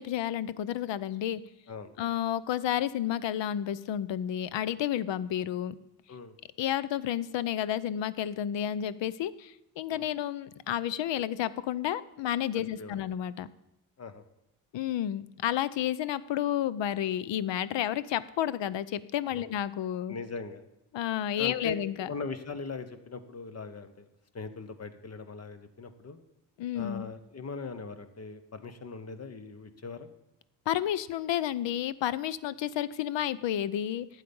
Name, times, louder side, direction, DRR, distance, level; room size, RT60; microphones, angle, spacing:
voice 1, 0.0-1.4 2.0-5.7 6.6-13.5 14.7-20.2 20.9-22.1 26.6-27.1 30.7-34.1, left 11 dB, 70° left, 18 dB, 0.7 m, -31 dB
voice 2, 1.7-2.1 6.1-6.3 9.9-10.1 12.5-13.0 14.0-14.2 20.1-20.6 21.4-24.1 24.3-26.2 26.7-30.1, left 4 dB, 35° left, 11 dB, 1.1 m, -40 dB
12.5 x 8.3 x 5.4 m, 0.91 s
cardioid pair, 105°, 45 cm